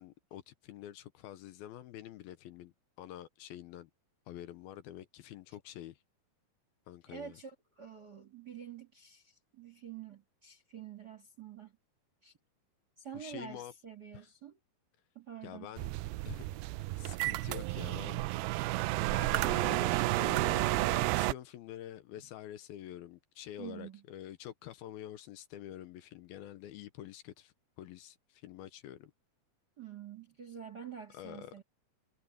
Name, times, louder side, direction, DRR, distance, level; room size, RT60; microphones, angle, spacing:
voice 1, 0.0-3.9 4.3-6.0 6.9-7.4 13.1-13.7 14.1-14.3 15.4-15.9 16.2-18.3 18.8-29.1 31.1-31.5, left 12 dB, 75° left, 2.6 m, -47 dB
voice 2, 7.1-11.7 12.2-12.3 13.0-14.6 15.1-15.7 23.6-24.0 29.8-31.6, right 8 dB, 40° right, 1.5 m, -47 dB
sound 1, 15.8-21.3, right 20 dB, 85° right, 2.2 m, -31 dB
omnidirectional pair, 4.7 m